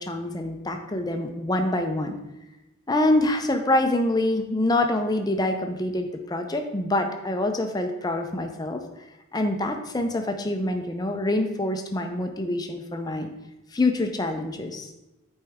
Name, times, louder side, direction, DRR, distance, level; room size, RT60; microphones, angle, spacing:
voice 1, 0.0-2.2 2.9-8.8 9.3-13.3 13.7-14.9, left 1 dB, 20° left, 5 dB, 0.5 m, -25 dB
8.1 x 4.5 x 3.5 m, 0.95 s
head